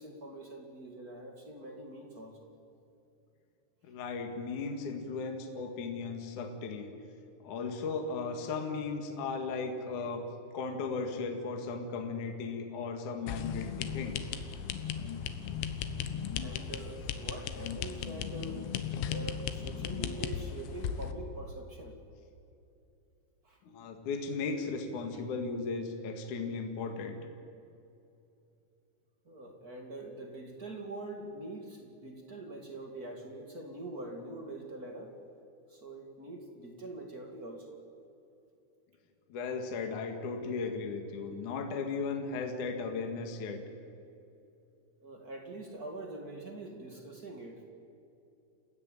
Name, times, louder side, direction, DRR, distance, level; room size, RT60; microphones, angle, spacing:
voice 1, 0.0-2.5 16.4-18.6 19.1-22.0 23.4-23.6 29.2-35.1 35.7-37.8 45.0-47.6, right 2 dB, 50° right, 3 dB, 1.1 m, -44 dB
voice 2, 3.9-6.9 7.4-10.3 10.5-14.3 23.6-27.2 39.3-43.6, left 4 dB, 50° left, 4 dB, 2.8 m, -36 dB
sound 1, 13.3-21.1, left 8 dB, 80° left, 3.4 m, -36 dB
29.0 x 16.0 x 9.2 m, 2.8 s
omnidirectional pair, 5.4 m